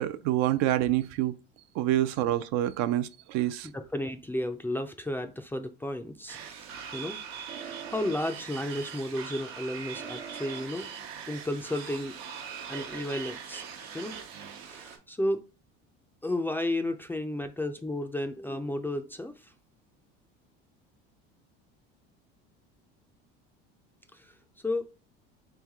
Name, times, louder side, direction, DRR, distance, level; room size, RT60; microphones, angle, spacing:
voice 1, 0.0-1.3 1.8-3.7, right 13 dB, 65° right, 0.4 m, -27 dB
voice 2, 3.7-6.4 6.9-7.2 7.6-10.9 11.3-12.2 12.7-13.6 13.9-14.1 14.5-15.4 16.2-19.5 24.1-24.3 24.6-24.9, left 1 dB, 5° left, 0.3 m, -33 dB
sound 1, 6.3-15.0, right 7 dB, 80° right, 0.9 m, -41 dB
3.5 x 3.2 x 3.5 m
supercardioid pair, 100°, 29 cm